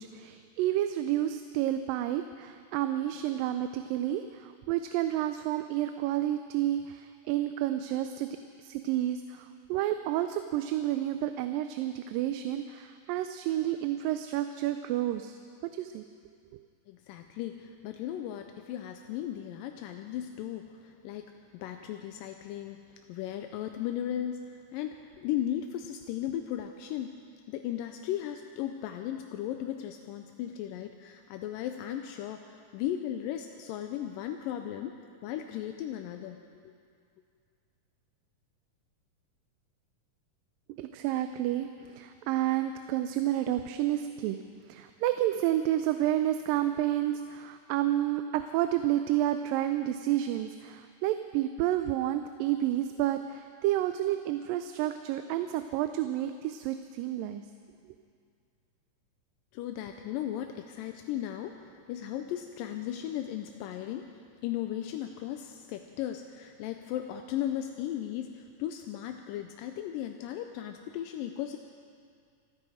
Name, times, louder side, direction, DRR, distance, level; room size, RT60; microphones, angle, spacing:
voice 1, 0.0-8.3 8.6-16.0 16.5-16.6 40.8-44.4 44.7-57.4 57.8-58.0, right 13 dB, 90° right, 9 dB, 2.3 m, -30 dB
voice 2, 16.9-21.3 21.5-22.8 23.1-27.2 27.5-35.0 35.2-36.4 36.6-36.7 59.5-64.1 64.4-71.6, left 11 dB, 85° left, 6 dB, 2.3 m, -36 dB
27.0 x 9.3 x 5.0 m, 2.3 s
omnidirectional pair, 3.9 m